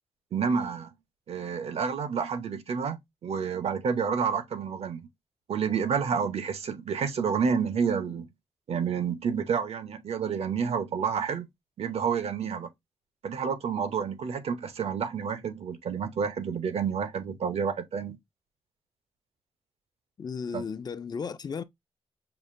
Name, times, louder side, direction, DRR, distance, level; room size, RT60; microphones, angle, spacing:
voice 1, 0.3-0.9 1.3-5.1 5.5-8.3 8.7-11.5 11.8-12.7 13.2-18.2 20.5-20.6, right 6 dB, 75° right, 0.8 m, -29 dB
voice 2, 20.2-21.6, left 6 dB, 40° left, 0.4 m, -34 dB
5.6 x 2.4 x 2.5 m
wide cardioid pair, 105°, 10 cm